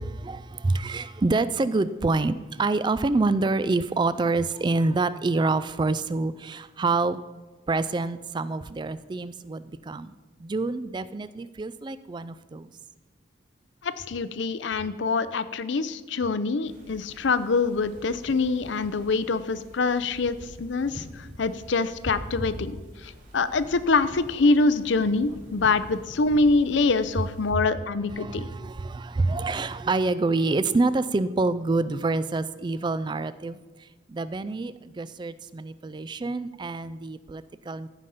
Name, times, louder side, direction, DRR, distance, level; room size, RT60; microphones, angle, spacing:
voice 1, 0.0-7.2 7.7-10.1 10.4-12.7 28.1-37.9, right 3 dB, 25° right, 14 dB, 0.3 m, -27 dB
voice 2, 13.8-28.5, left 3 dB, 65° left, 14 dB, 0.5 m, -25 dB
sound 1, 16.6-27.5, equal, 40° right, 3.2 m, -44 dB
14.5 x 5.2 x 5.6 m, 1.2 s
head